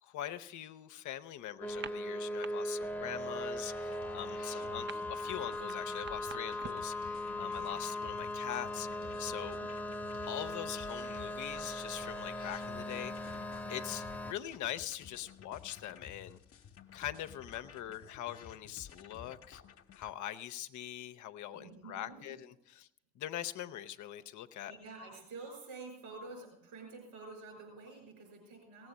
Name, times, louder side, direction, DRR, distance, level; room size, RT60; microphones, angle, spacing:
voice 1, 0.0-8.9 9.2-9.6 10.3-13.4 13.7-16.4 16.9-19.6 20.0-22.9 23.2-24.7, left 12 dB, 60° left, 10 dB, 0.7 m, -42 dB
sound 1, 1.6-14.3, left 1 dB, 5° left, 1.0 m, -39 dB
sound 2, 1.7-2.5 2.8-3.1 3.4-7.0, right 7 dB, 35° right, 0.6 m, -48 dB
voice 2, 2.9-3.3 7.3-7.8 9.6-9.8 21.5-22.4 24.7-28.9, right 3 dB, 70° right, 3 dB, 5.4 m, -50 dB
sound 3, 3.5-20.1, left 7 dB, 40° left, 1.0 m, -54 dB
17.0 x 7.6 x 6.3 m, 0.80 s
figure-of-eight pair, 40°, 34 cm